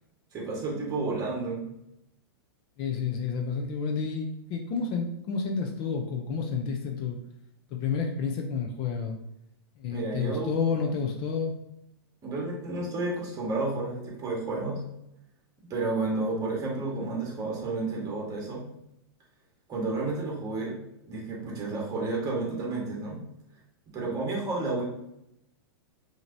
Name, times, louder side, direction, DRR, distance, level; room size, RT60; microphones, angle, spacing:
voice 1, 0.3-1.7 9.9-10.5 12.2-14.8 15.7-18.6 19.7-20.8 21.1-23.2 23.9-24.8, right 3 dB, 25° right, -2 dB, 1.6 m, -31 dB
voice 2, 2.8-7.2 7.7-9.2 9.8-11.5, left 5 dB, 40° left, 3 dB, 0.6 m, -30 dB
5.7 x 2.9 x 2.7 m, 0.81 s
hypercardioid pair, 125°, 13 cm